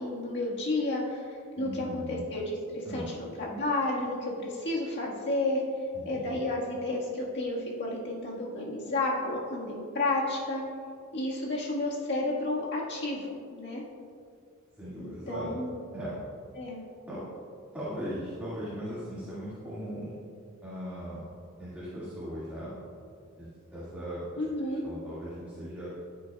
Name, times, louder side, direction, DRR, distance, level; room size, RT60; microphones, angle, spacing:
voice 1, 0.0-5.6 6.1-10.6 11.1-13.8 15.0-15.7 16.6-16.8 24.4-24.8, left 2 dB, 55° left, -4 dB, 1.7 m, -31 dB
voice 2, 1.5-2.2 2.9-3.1 5.9-6.4 14.8-15.5 15.9-16.2 17.1-17.2 17.7-20.2 20.6-21.3 21.6-22.7 23.4-24.2 24.6-25.9, equal, 5° right, -12 dB, 2.1 m, -38 dB
14.0 x 7.4 x 2.4 m, 2.3 s
head